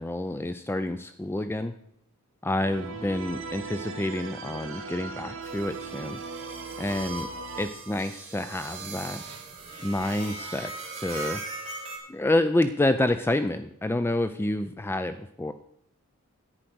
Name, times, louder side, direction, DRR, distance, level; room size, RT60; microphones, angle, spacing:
voice 1, 0.0-1.7 2.4-6.2 6.8-7.3 7.6-9.2 9.8-11.4 12.1-15.5, left 1 dB, 10° left, 10 dB, 0.3 m, -28 dB
sound 1, 2.6-7.7, right 4 dB, 60° right, 1.2 m, -38 dB
sound 2, 5.4-12.0, right 3 dB, 30° right, 3.2 m, -40 dB
10.0 x 8.9 x 6.1 m, 0.72 s
head